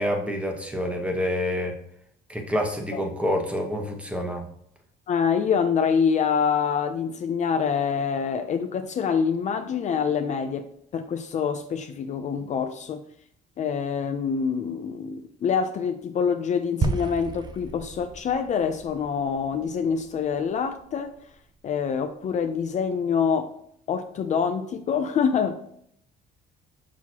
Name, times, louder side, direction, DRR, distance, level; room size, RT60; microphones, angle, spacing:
voice 1, 0.0-1.8 2.3-4.4, equal, 5° right, 3 dB, 1.1 m, -27 dB
voice 2, 5.1-13.0 13.6-21.1 21.6-23.5 23.9-25.6, left 6 dB, 45° left, 7 dB, 0.5 m, -26 dB
sound 1, 16.8-21.2, right 3 dB, 25° right, 0.6 m, -33 dB
6.1 x 5.7 x 2.9 m, 0.68 s
cardioid pair, 110°, 17 cm